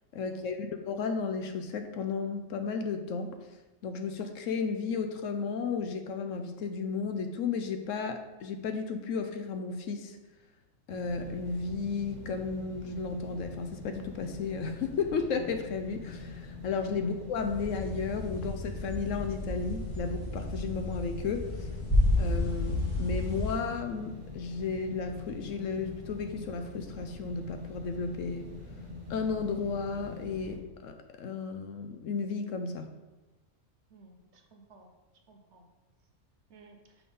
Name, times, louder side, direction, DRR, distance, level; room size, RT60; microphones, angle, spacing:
voice 1, 0.1-3.3 3.8-10.2 10.9-21.7 22.2-28.5 29.1-32.9, left 5 dB, 70° left, 6 dB, 0.8 m, -34 dB
sound 1, 10.9-30.6, left 2 dB, 35° right, 1.0 m, -44 dB
sound 2, 17.3-23.6, left 1 dB, 35° left, 1.9 m, -31 dB
voice 2, 33.9-34.9 35.3-35.7 36.5-36.8, right 3 dB, 60° right, 3 dB, 0.9 m, -56 dB
5.9 x 3.6 x 5.3 m, 1.1 s
omnidirectional pair, 1.5 m